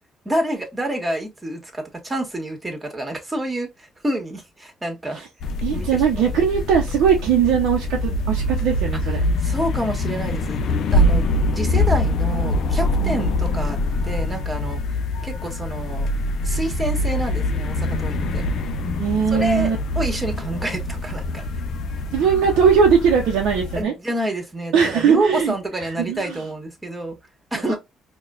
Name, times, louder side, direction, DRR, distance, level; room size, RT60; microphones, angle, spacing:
voice 1, 0.2-5.3 5.7-6.3 9.0-9.1 9.4-10.6 10.9-13.8 14.0-14.8 15.2-16.1 16.4-18.4 19.3-21.6 23.7-27.2 27.5-27.8, right 1 dB, 20° right, 1.5 m, -28 dB
sound 1, 5.4-23.8, left 1 dB, 65° left, 0.5 m, -24 dB
voice 2, 5.6-9.2 13.0-13.6 19.0-19.8 22.1-23.9 24.7-25.5 25.8-26.4 27.7-27.8, right 7 dB, 75° right, 0.6 m, -20 dB
4.7 x 2.2 x 2.4 m
hypercardioid pair, 55°, 0 cm